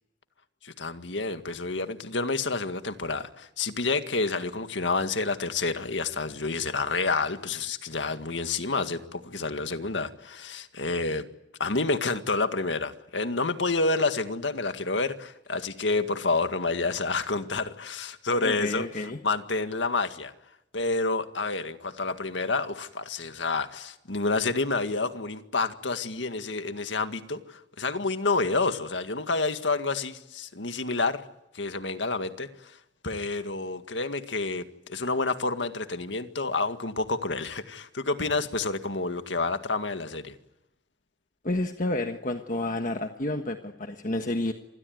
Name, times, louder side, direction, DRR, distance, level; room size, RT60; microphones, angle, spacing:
voice 1, 0.6-11.3 11.6-20.3 20.7-31.2 31.5-32.8 33.0-40.4, left 3 dB, 85° left, 9 dB, 1.9 m, -29 dB
voice 2, 18.4-19.2 41.4-44.5, left 2 dB, 45° left, 6 dB, 1.5 m, -30 dB
26.5 x 21.0 x 9.5 m, 0.88 s
head